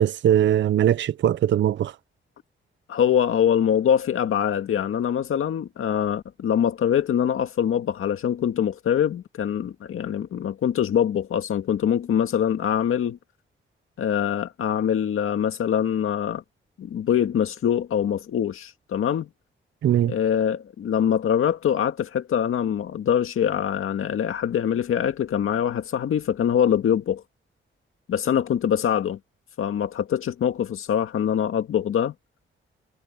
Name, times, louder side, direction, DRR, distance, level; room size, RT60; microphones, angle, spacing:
voice 1, 0.0-1.9 19.8-20.1, right 10 dB, 65° right, 0.5 m, -20 dB
voice 2, 2.9-13.2 14.0-16.4 16.8-19.3 20.1-27.2 28.1-29.2 29.6-32.1, left 9 dB, 90° left, 2.0 m, -24 dB
wide cardioid pair, 145°, 21 cm